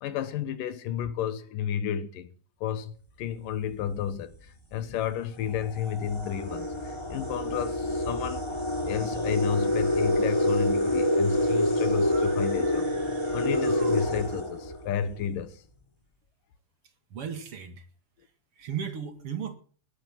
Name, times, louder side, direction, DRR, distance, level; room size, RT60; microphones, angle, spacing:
voice 1, 0.0-2.3 2.6-8.5 8.9-12.9 13.3-15.6, left 9 dB, 75° left, 2.7 m, -32 dB
sound 1, 3.8-4.1 4.9-5.0 5.4-15.2, left 1 dB, 10° left, 2.1 m, -27 dB
sound 2, 12.0-14.6, right 2 dB, 85° right, 7.0 m, -48 dB
voice 2, 17.1-17.8 18.6-19.5, right 8 dB, 45° right, 2.6 m, -35 dB
19.5 x 8.4 x 7.6 m
omnidirectional pair, 4.1 m